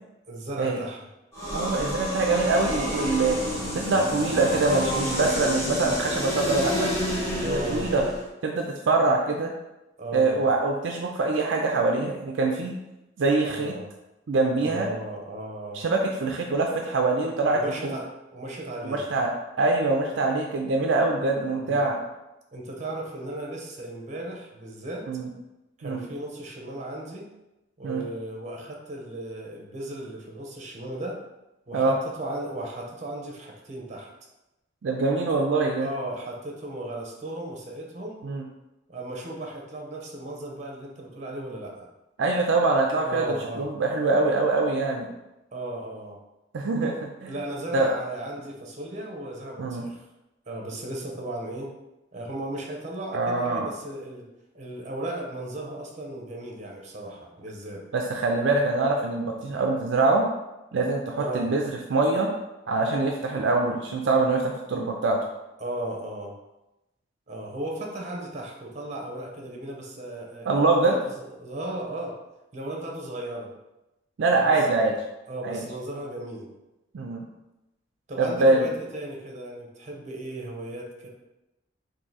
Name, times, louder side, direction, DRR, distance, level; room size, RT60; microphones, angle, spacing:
voice 1, 0.3-1.1 7.4-7.9 10.0-10.5 13.4-13.9 14.6-15.8 17.5-19.1 21.6-21.9 22.5-25.1 25.8-27.3 27.8-31.2 31.7-34.1 35.3-35.4 35.8-38.2 38.9-41.9 43.0-43.7 45.5-46.2 47.3-50.0 50.5-51.7 52.1-54.3 54.5-57.8 61.2-61.5 65.6-66.3 67.3-72.2 72.5-73.5 74.3-74.8 75.3-76.5 78.1-81.1, right 1 dB, 35° right, 0 dB, 0.7 m, -36 dB
sound 1, 1.3-8.3, equal, 15° left, 1.3 m, -29 dB
voice 2, 1.5-3.4 3.7-6.9 7.4-8.0 8.4-9.5 10.1-12.7 13.2-13.7 14.3-14.9 15.7-18.0 18.8-19.3 19.6-22.0 25.1-25.3 25.8-26.0 27.8-28.0 31.7-31.9 34.8-35.9 38.2-38.4 42.2-45.1 46.5-47.4 47.7-47.9 49.6-49.8 53.1-53.7 57.9-60.2 60.7-62.3 62.7-65.2 70.5-71.0 74.2-74.9 75.4-75.6 76.9-77.3 78.2-78.7, right 3 dB, 65° right, 1 dB, 0.4 m, -24 dB
3.6 x 2.6 x 4.0 m, 0.96 s
head